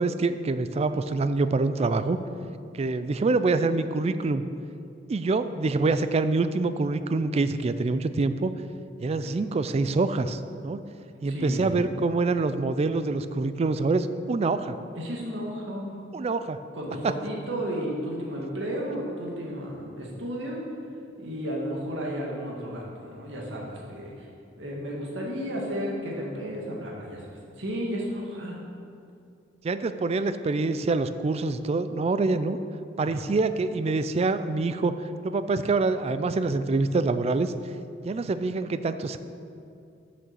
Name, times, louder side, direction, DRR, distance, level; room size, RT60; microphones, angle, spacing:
voice 1, 0.0-2.2 2.7-4.4 5.1-8.5 9.0-10.8 11.2-14.7 16.1-16.6 17.0-17.1 29.6-32.6 33.0-34.9 35.2-37.5 38.0-39.2, right 3 dB, 35° right, 12 dB, 0.3 m, -25 dB
voice 2, 11.3-11.7 15.0-16.0 16.7-20.6 21.2-24.3 24.6-27.2 27.5-28.6 33.0-33.3, equal, 80° right, -2 dB, 1.8 m, -33 dB
6.9 x 6.1 x 6.6 m, 2.5 s
head